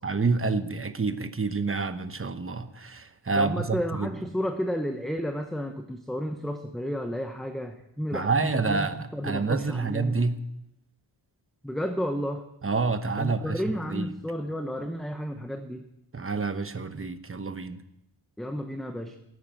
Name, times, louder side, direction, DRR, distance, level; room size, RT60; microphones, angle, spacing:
voice 1, 0.0-4.2 8.1-10.4 12.6-14.1 16.1-17.8, right 4 dB, 25° right, 10 dB, 1.0 m, -28 dB
voice 2, 3.4-10.2 11.6-12.5 13.2-15.9 18.4-19.2, equal, ahead, 6 dB, 0.9 m, -32 dB
17.5 x 9.5 x 7.7 m, 0.86 s
wide cardioid pair, 115°, 48 cm